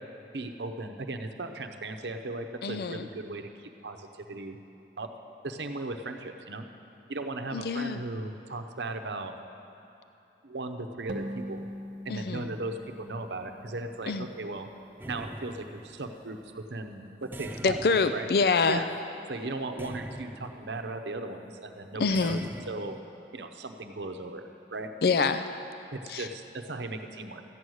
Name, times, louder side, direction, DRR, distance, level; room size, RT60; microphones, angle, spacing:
voice 1, 0.3-4.6 5.0-5.1 5.4-6.6 7.1-9.3 10.4-11.7 12.0-14.7 15.1-17.8 18.1-18.3 18.7-18.9 19.3-22.4 22.7-23.0 23.3-24.4 24.7-24.9 25.9-27.4, right 2 dB, 80° right, 6 dB, 0.8 m, -37 dB
voice 2, 2.6-3.1 7.5-8.0 12.1-12.5 14.1-14.3 17.6-18.8 22.0-22.4 25.0-25.5 26.1-26.3, left 4 dB, 60° left, 10 dB, 0.4 m, -26 dB
sound 1, 11.1-14.6, equal, 45° right, 0.7 m, -42 dB
sound 2, 15.0-16.3 17.3-19.0 19.8-20.9 22.1-23.0, right 1 dB, 10° right, 0.3 m, -43 dB
13.5 x 9.3 x 6.4 m, 2.9 s
head